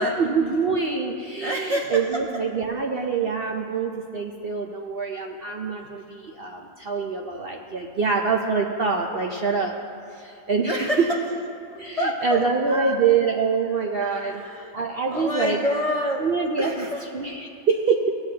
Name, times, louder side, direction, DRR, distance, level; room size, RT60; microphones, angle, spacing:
voice 1, 0.2-9.7 10.2-10.9 11.8-14.4 14.7-15.6 16.2-16.9 17.1-18.1, right 5 dB, 55° right, 2 dB, 0.7 m, -25 dB
voice 2, 1.4-2.2 10.7-11.2 11.7-13.0 14.0-14.7 15.1-17.1, equal, 35° left, -2 dB, 0.6 m, -28 dB
18.0 x 9.6 x 2.8 m, 2.8 s
omnidirectional pair, 1.5 m